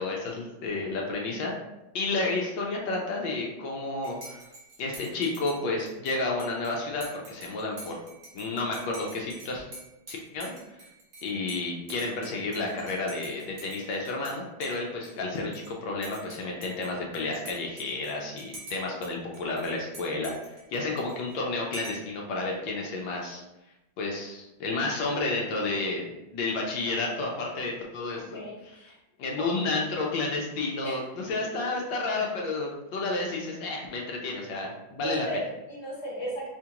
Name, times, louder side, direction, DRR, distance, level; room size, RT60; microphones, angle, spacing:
voice 1, 0.0-1.5 1.9-4.4 4.8-8.0 8.3-9.6 10.1-10.5 11.2-23.4 24.0-28.7 29.2-35.3, left 3 dB, 75° left, -1 dB, 1.3 m, -31 dB
Dishes pots and pans / Cutlery silverware / Chink clink, 4.0-14.3 14.6-15.7 16.0-19.1 19.3-21.3 21.7-22.1, right 2 dB, 55° right, 1.5 m, -47 dB
voice 2, 28.3-29.0 29.4-29.6 30.8-31.0 31.5-31.7 35.0-36.5, right 1 dB, 20° left, -6 dB, 0.9 m, -36 dB
5.0 x 2.4 x 2.8 m, 0.96 s
omnidirectional pair, 2.1 m